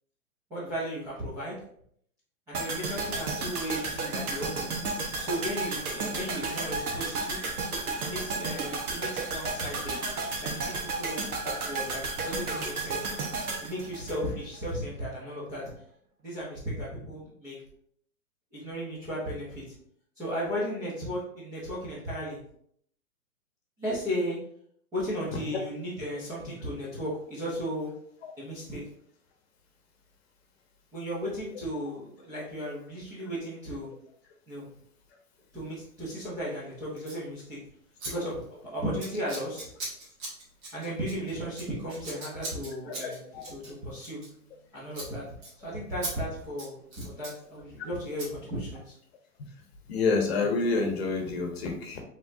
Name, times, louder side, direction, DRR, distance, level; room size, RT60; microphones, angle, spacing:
voice 1, 0.5-1.6 2.5-4.7 5.2-7.4 8.0-10.0 10.4-13.1 13.6-15.6 16.2-17.6 18.5-19.6 20.2-22.4 23.8-24.4 24.9-27.9 28.4-28.8 30.9-33.9 34.5-34.7 35.5-37.6 38.0-39.6 40.7-43.2 43.5-44.2 44.7-45.2 45.6-48.9, equal, 10° right, -10 dB, 0.6 m, -35 dB
sound 1, 2.5-14.7 15.0-15.1, right 3 dB, 75° right, 1.3 m, -33 dB
Scissors, 37.0-37.2 38.0-38.1 38.4-38.6 39.0-44.6 44.9-45.1 45.4-45.5 46.0-46.1 46.4-47.4 48.2-48.3, right 2 dB, 35° right, 1.6 m, -40 dB
voice 2, 43.0-43.4 49.9-52.0, left 4 dB, 45° left, 3 dB, 1.0 m, -28 dB
5.0 x 3.5 x 2.6 m, 0.65 s
hypercardioid pair, 160°, 44 cm